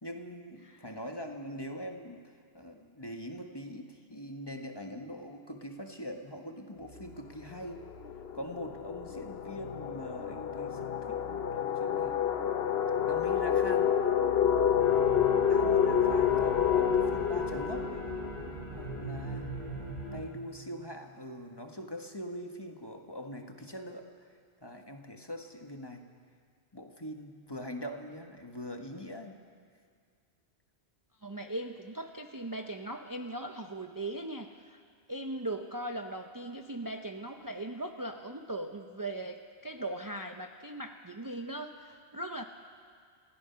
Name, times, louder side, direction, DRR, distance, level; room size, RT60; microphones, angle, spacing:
voice 1, 0.0-2.2 2.5-7.8 8.3-12.2 13.1-13.9 15.5-18.0 18.7-19.5 20.1-24.1 24.6-26.0 26.7-29.4, equal, 25° left, 3 dB, 1.4 m, -42 dB
voice 2, 0.6-1.0 31.2-34.8 35.1-42.4, right 1 dB, 20° right, 4 dB, 0.7 m, -39 dB
sound 1, 7.0-7.2 7.5-19.1, left 8 dB, 70° left, 1.0 m, -28 dB
sound 2, 14.8-20.2, right 2 dB, 40° right, 4.6 m, -41 dB
sound 3, 18.7-21.5, right 5 dB, 70° right, 1.7 m, -43 dB
28.0 x 17.0 x 5.7 m, 2.1 s
omnidirectional pair, 1.1 m